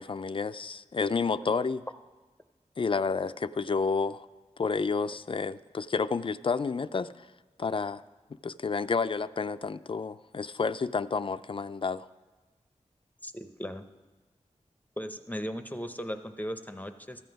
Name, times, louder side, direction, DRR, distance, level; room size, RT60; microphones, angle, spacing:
voice 1, 0.0-1.9 2.8-4.3 4.6-7.3 7.6-8.0 8.4-12.1, left 4 dB, 45° left, 14 dB, 0.4 m, -30 dB
voice 2, 13.2-13.8 15.0-17.3, equal, 15° left, 8 dB, 0.7 m, -37 dB
13.0 x 7.8 x 5.2 m, 1.3 s
cardioid pair, 50°, 13 cm